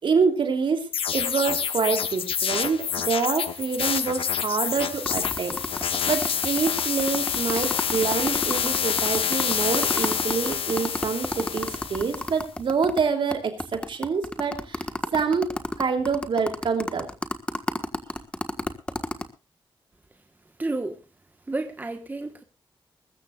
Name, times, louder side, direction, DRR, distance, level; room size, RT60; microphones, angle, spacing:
voice 1, 0.0-5.6 6.1-14.9 15.1-17.1, right 5 dB, 70° right, 3.0 m, -26 dB
sound 1, 0.9-12.3, left 7 dB, 90° left, 1.1 m, -27 dB
sound 2, 5.0-13.0 13.3-13.4 13.6-19.2, left 1 dB, 10° left, 1.4 m, -30 dB
voice 2, 20.6-21.0 21.5-22.4, right 2 dB, 20° right, 1.3 m, -30 dB
21.5 x 14.0 x 2.4 m
wide cardioid pair, 130°, 9 cm